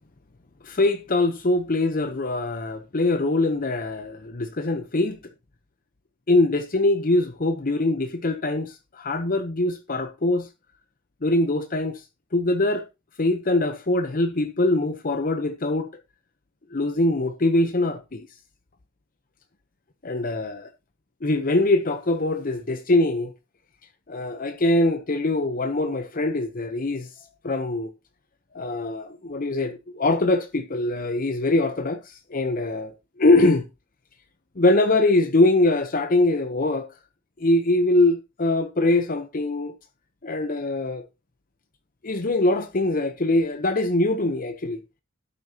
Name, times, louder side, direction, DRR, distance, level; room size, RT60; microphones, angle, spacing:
voice 1, 0.6-5.2 6.3-10.5 11.2-12.0 12.3-12.8 13.2-15.9 16.7-18.3 20.0-20.7 21.2-23.3 24.1-27.9 28.5-33.6 34.6-36.9 37.4-39.7 40.2-41.0 42.0-44.8, left 2 dB, 45° left, 0.8 m, -23 dB
12.0 x 10.0 x 2.9 m
head